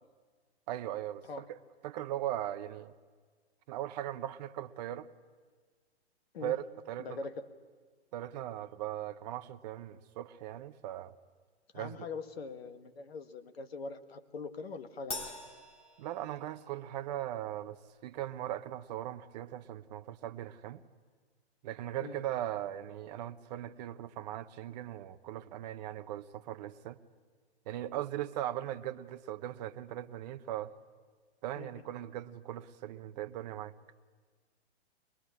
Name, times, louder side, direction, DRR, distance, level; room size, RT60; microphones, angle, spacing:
voice 1, 0.7-1.6 1.8-2.9 3.7-5.1 6.4-7.2 8.1-11.1 11.7-12.0 16.0-20.8 21.6-27.0 27.7-30.7 31.4-33.7, right 12 dB, 40° right, 0.9 m, -39 dB
voice 2, 7.0-7.5 11.7-15.4 22.0-22.2 31.6-31.7, left 4 dB, 65° left, 1.7 m, -42 dB
Crash cymbal, 15.1-16.8, left 2 dB, 20° left, 2.4 m, -43 dB
23.5 x 20.5 x 8.7 m
figure-of-eight pair, 120°, 33 cm